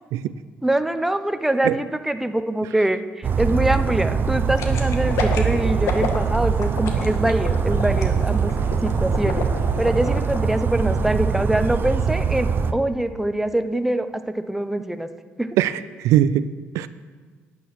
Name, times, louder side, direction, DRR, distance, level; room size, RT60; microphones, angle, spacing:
voice 1, 0.6-8.5 8.8-9.5 9.8-15.1 15.4-15.6, right 1 dB, 5° right, 9 dB, 0.7 m, -24 dB
Bird vocalization bird call bird song, 3.2-12.7, right 6 dB, 45° right, 0.6 m, -22 dB
sound 1, 4.6-10.4 10.7-10.8, left 5 dB, 70° left, 1.4 m, -29 dB
voice 2, 15.6-16.9, right 11 dB, 80° right, 14 dB, 0.3 m, -21 dB
9.3 x 9.1 x 5.9 m, 1.5 s
supercardioid pair, 80°, 5 cm